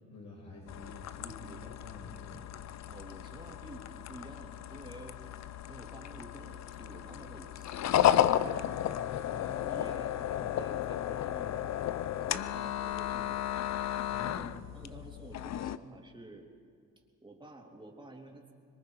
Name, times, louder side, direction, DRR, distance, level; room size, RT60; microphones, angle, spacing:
voice 1, 0.1-1.3 1.8-2.5 14.1-14.4 14.8-15.0, left 2 dB, 80° left, -5 dB, 5.7 m, -49 dB
sound 1, 0.7-15.8, left 11 dB, 65° left, 0.7 m, -33 dB
voice 2, 1.2-1.8 2.9-5.2 5.7-11.7 12.3-13.4 14.2-16.5 17.2-18.5, right 1 dB, 15° right, 1 dB, 3.1 m, -50 dB
25.0 x 22.0 x 4.8 m, 2.1 s
cardioid pair, 90°, 30 cm